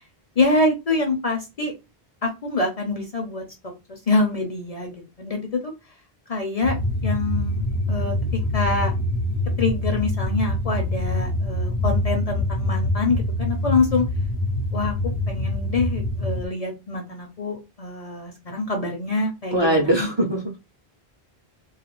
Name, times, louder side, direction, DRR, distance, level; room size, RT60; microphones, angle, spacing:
voice 1, 0.4-1.7 2.2-5.7 6.3-6.8 7.0-8.9 9.6-14.0 14.7-19.9, left 3 dB, 45° left, 2 dB, 0.6 m, -25 dB
sound 1, 6.6-16.5, left 1 dB, 85° left, 1.0 m, -25 dB
voice 2, 19.5-20.6, right 1 dB, 35° right, 0 dB, 0.5 m, -21 dB
2.4 x 2.3 x 2.9 m, 0.24 s
omnidirectional pair, 1.1 m